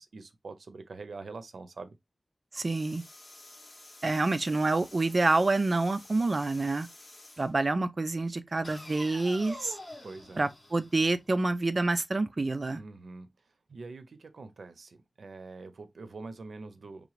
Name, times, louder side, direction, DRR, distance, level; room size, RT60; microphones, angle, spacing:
voice 1, 0.0-1.9 10.0-10.5 12.7-13.3 13.7-17.1, right 3 dB, 90° right, 0.6 m, -44 dB
voice 2, 2.5-3.0 4.0-6.9 7.4-9.7 10.4-12.8, right 2 dB, 45° right, 0.5 m, -27 dB
sound 1, 2.6-7.5 8.6-11.6, left 1 dB, 40° left, 1.7 m, -49 dB
3.8 x 3.3 x 3.2 m
wide cardioid pair, 95°, 0 cm